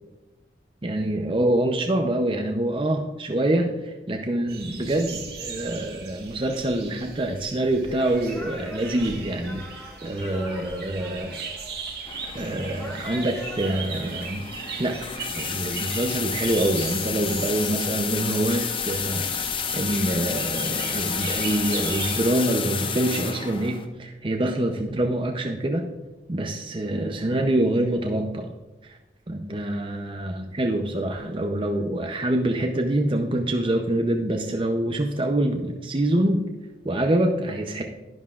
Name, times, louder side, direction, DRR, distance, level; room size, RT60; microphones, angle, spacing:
voice 1, 0.8-9.7 10.0-11.4 12.3-14.5 14.8-25.9 26.3-28.5 28.8-29.0 29.3-36.4 36.8-37.8, right 1 dB, 30° right, 3 dB, 0.6 m, -25 dB
sound 1, 4.5-22.2, right 5 dB, 60° right, 1.5 m, -38 dB
sound 2, 7.8-14.3, left 1 dB, 15° left, 2.4 m, -42 dB
sound 3, 12.1-23.9, left 6 dB, 30° left, 0.6 m, -30 dB
11.0 x 11.0 x 2.4 m, 1.1 s
head